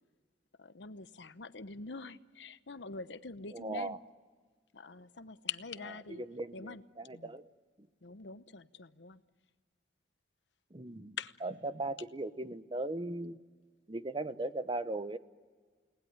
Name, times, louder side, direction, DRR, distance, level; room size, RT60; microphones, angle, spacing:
voice 1, 0.6-4.0 4.7-6.2 6.5-6.8 7.1-7.3 8.0-9.2 11.2-11.3, left 5 dB, 75° left, 13 dB, 1.0 m, -44 dB
voice 2, 3.5-4.0 6.1-7.5 10.7-11.2 11.4-13.4 13.9-15.2, right 2 dB, 25° right, 12 dB, 0.9 m, -38 dB
30.0 x 19.5 x 9.5 m, 1.5 s
head